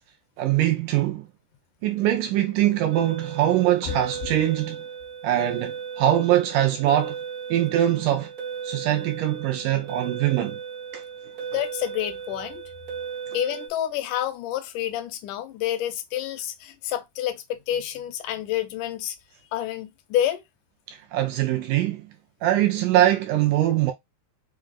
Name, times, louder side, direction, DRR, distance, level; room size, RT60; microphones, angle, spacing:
voice 1, 0.4-1.3 1.8-4.8 5.2-7.2 7.5-8.3 8.6-10.6 10.9-11.0 20.9-22.1 22.4-23.9, right 12 dB, 80° right, 2.0 m, -22 dB
sound 1, 2.9-13.7, right 6 dB, 55° right, 1.0 m, -36 dB
voice 2, 11.5-12.6 13.3-19.2 19.5-20.4, left 11 dB, 75° left, 2.0 m, -28 dB
5.5 x 2.3 x 3.6 m
omnidirectional pair, 4.1 m